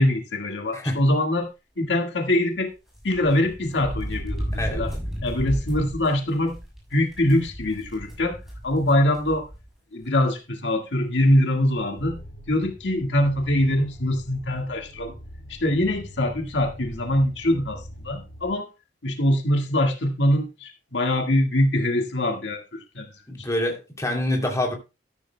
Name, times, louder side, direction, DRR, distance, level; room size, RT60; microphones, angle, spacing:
voice 1, 0.0-1.5 1.8-2.7 3.0-4.9 5.2-6.6 6.9-8.4 8.6-9.5 9.9-12.2 12.5-15.1 15.5-18.7 19.0-23.1, left 1 dB, 80° left, 1.8 m, -23 dB
sound 1, 2.9-9.7 10.0-10.1 11.2-11.3 11.6-11.8, equal, ahead, 6.0 m, -33 dB
sound 2, 12.0-18.5, equal, 55° left, 3.0 m, -42 dB
voice 2, 23.3-24.7, left 1 dB, 20° left, 2.9 m, -26 dB
13.5 x 11.5 x 2.2 m
head